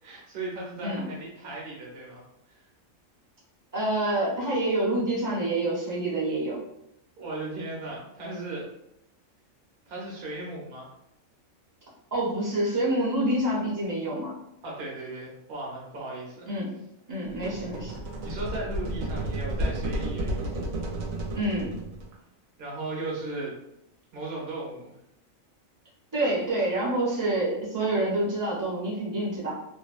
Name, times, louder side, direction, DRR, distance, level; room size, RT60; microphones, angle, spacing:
voice 1, 0.0-2.2 2.5-2.6 7.2-8.7 9.9-10.9 14.6-16.5 18.2-20.5 22.6-23.5 24.1-24.9, right 2 dB, 45° right, -4 dB, 0.8 m, -36 dB
voice 2, 3.7-6.6 12.1-14.3 16.5-16.7 17.1-18.0 21.3-21.8 26.1-29.5, right 1 dB, 20° right, -6 dB, 0.5 m, -27 dB
sound 1, 17.3-22.1, right 1 dB, 85° right, 1.0 m, -32 dB
2.5 x 2.2 x 2.4 m, 0.81 s
omnidirectional pair, 1.4 m